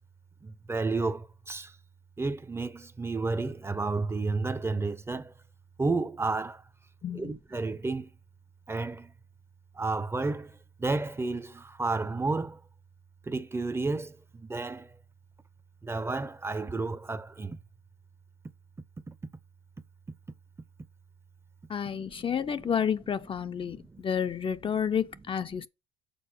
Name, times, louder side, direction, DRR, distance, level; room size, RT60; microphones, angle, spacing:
voice 1, 0.4-1.7 2.2-5.3 5.8-6.6 7.1-8.1 8.7-9.1 9.7-12.6 13.3-14.9 15.8-17.6 19.1-19.2 21.8-22.9 23.4-24.0 24.7-24.8 25.6-25.7, right 3 dB, 15° right, 0.6 m, -32 dB
voice 2, 7.0-7.3 21.7-25.7, left 7 dB, 30° left, 0.5 m, -30 dB
6.8 x 4.1 x 5.4 m
hypercardioid pair, 75°, 17 cm